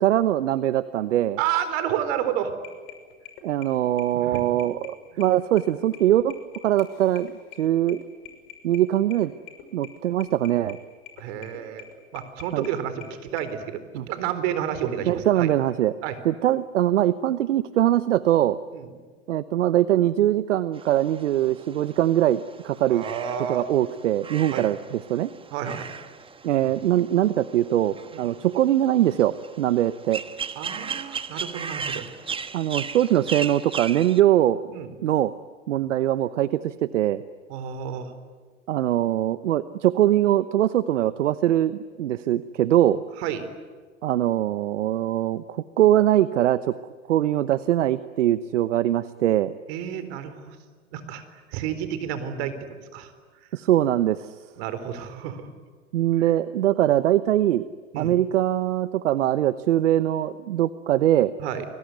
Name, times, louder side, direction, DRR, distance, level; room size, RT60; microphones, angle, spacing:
voice 1, 0.0-1.4 3.4-6.3 6.6-7.3 7.6-8.0 8.6-9.3 9.7-10.8 12.5-12.7 13.9-14.0 15.1-15.9 16.2-18.6 19.3-23.0 23.5-25.3 26.4-30.2 32.5-34.6 35.0-35.3 35.7-37.2 38.7-43.0 44.0-46.8 47.1-49.5 53.5-54.3 55.9-57.6 58.0-61.3, right 12 dB, 75° right, 15 dB, 1.0 m, -22 dB
voice 2, 1.4-2.5 4.1-4.4 5.1-5.2 11.2-11.8 12.1-13.8 14.1-15.5 16.0-16.2 18.7-18.9 22.9-23.6 24.5-24.7 25.5-25.9 26.6-26.7 28.1-28.2 30.6-32.1 34.7-35.0 35.8-35.9 37.5-38.1 43.2-43.5 49.7-50.6 50.9-53.1 54.6-55.5 56.2-56.3 57.9-58.2 61.4-61.7, right 9 dB, 55° right, 11 dB, 4.2 m, -30 dB
sound 1, 2.5-13.4, left 10 dB, 55° left, 6.3 m, -46 dB
sound 2, 20.7-34.2, right 6 dB, 15° right, 1.4 m, -37 dB
29.5 x 21.5 x 9.4 m, 1.5 s
hypercardioid pair, 105°, 37 cm